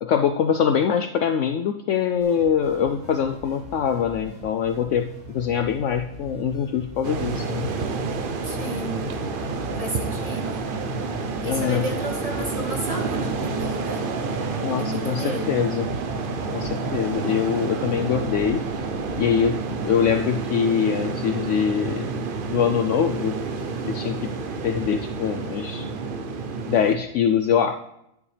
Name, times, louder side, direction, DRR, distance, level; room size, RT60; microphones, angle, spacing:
voice 1, 0.0-5.1 5.3-7.7 11.4-11.8 14.6-15.9 16.5-18.6 19.2-19.6 19.9-22.1 22.5-23.4 23.9-24.3 24.6-25.9 26.7-27.7, left 8 dB, 65° left, 7 dB, 0.8 m, -23 dB
sound 1, 2.2-20.2, right 1 dB, 85° right, 2.7 m, -42 dB
sound 2, 7.0-27.0, right 4 dB, 45° right, 0.7 m, -29 dB
voice 2, 8.4-9.1 9.8-10.7 11.4-14.1 14.8-15.7, equal, 25° right, -1 dB, 1.9 m, -32 dB
12.0 x 9.7 x 3.3 m, 0.81 s
omnidirectional pair, 1.5 m